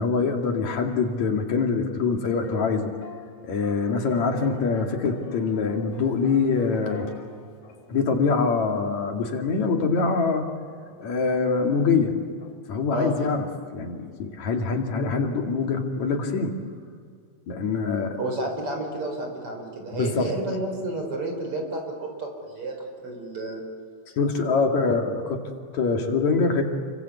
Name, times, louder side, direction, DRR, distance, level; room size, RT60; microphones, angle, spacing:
voice 1, 0.0-2.9 3.4-7.1 7.9-10.5 11.0-12.2 12.7-13.5 13.7-16.6 17.5-18.2 19.9-20.3 24.2-25.4 25.7-26.6, left 4 dB, 70° left, 3 dB, 3.5 m, -24 dB
sound 1, 2.4-8.8 9.3-9.4 10.0-12.6, left 5 dB, 90° left, 6.6 m, -45 dB
voice 2, 18.1-22.8 23.0-23.6, right 2 dB, 50° right, 3 dB, 5.9 m, -31 dB
29.5 x 23.5 x 8.3 m, 2.1 s
omnidirectional pair, 3.3 m